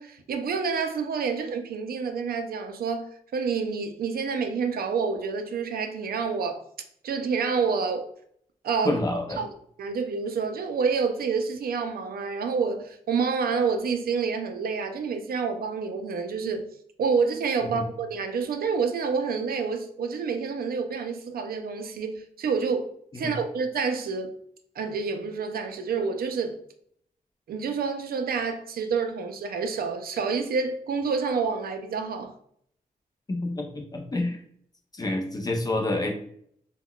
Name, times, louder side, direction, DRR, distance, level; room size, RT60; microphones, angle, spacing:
voice 1, 0.0-6.6 7.0-8.1 8.6-9.0 9.4-9.5 9.8-16.7 17.0-22.9 23.1-24.3 24.8-26.6 27.5-32.3, right 5 dB, 85° right, 0.4 m, -28 dB
voice 2, 8.8-9.4 17.7-17.8 23.2-23.4 33.3-34.4 34.9-36.1, left 2 dB, 25° left, 0.4 m, -28 dB
3.6 x 2.1 x 2.2 m
wide cardioid pair, 175°, 15 cm